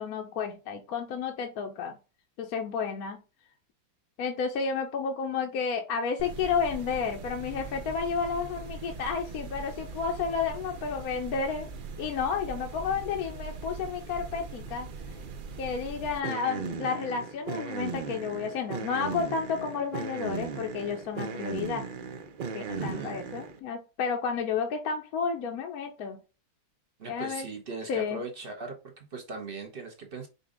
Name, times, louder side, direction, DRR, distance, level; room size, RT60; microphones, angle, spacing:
voice 1, 0.0-2.0 2.4-3.2 4.2-11.7 12.0-14.9 15.6-21.8 22.5-26.2 27.1-27.4 27.9-28.2, left 6 dB, 70° left, 1.1 m, -31 dB
sound 1, 6.2-23.6, right 4 dB, 80° right, 0.4 m, -39 dB
voice 2, 22.7-23.2 27.0-30.3, right 3 dB, 45° right, 0.9 m, -39 dB
5.2 x 2.4 x 3.6 m
omnidirectional pair, 1.7 m